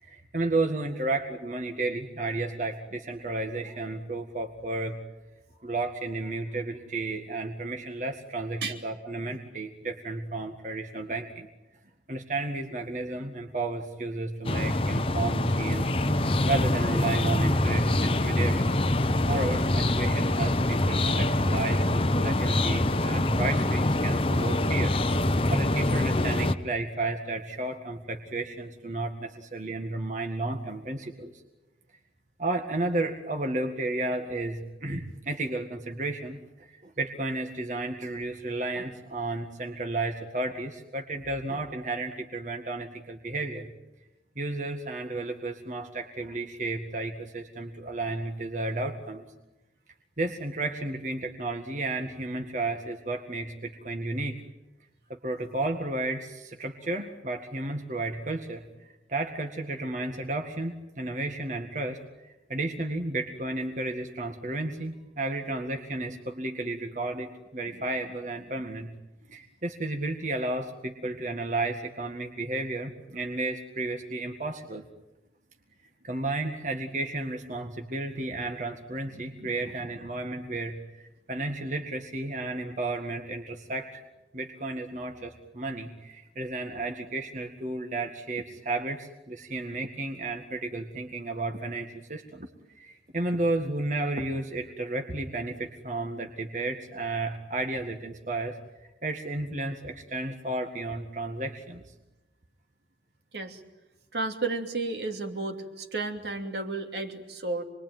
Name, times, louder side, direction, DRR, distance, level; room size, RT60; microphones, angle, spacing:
voice 1, 0.0-5.0 5.6-11.5 12.1-15.9 16.5-18.7 19.2-24.9 25.4-31.3 32.4-43.7 44.4-49.2 50.2-54.4 55.1-58.6 59.1-62.0 62.5-68.9 69.3-74.8 76.0-84.0 84.3-92.5 92.8-98.6 99.0-101.8, right 2 dB, 45° right, 3 dB, 1.9 m, -32 dB
sound 1, 14.4-26.5, left 1 dB, 30° left, 0.9 m, -25 dB
voice 2, 79.1-79.5 103.3-103.6 104.1-107.6, right 3 dB, 65° right, 4 dB, 2.9 m, -33 dB
28.5 x 22.0 x 9.3 m, 1.0 s
head